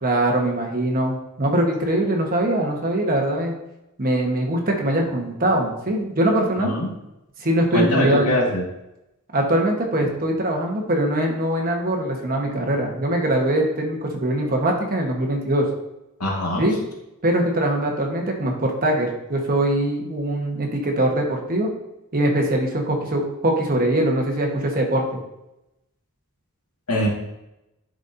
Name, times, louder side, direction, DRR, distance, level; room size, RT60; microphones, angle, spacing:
voice 1, 0.0-3.5 4.0-6.7 7.4-8.3 9.3-15.7 16.6-16.9 17.2-21.7 22.1-25.2, right 1 dB, 40° right, 1 dB, 1.1 m, -22 dB
voice 2, 6.6-6.9 7.7-8.6 16.2-16.6 26.9-27.1, left 1 dB, 85° left, -2 dB, 1.8 m, -22 dB
10.5 x 4.2 x 2.6 m, 0.91 s
head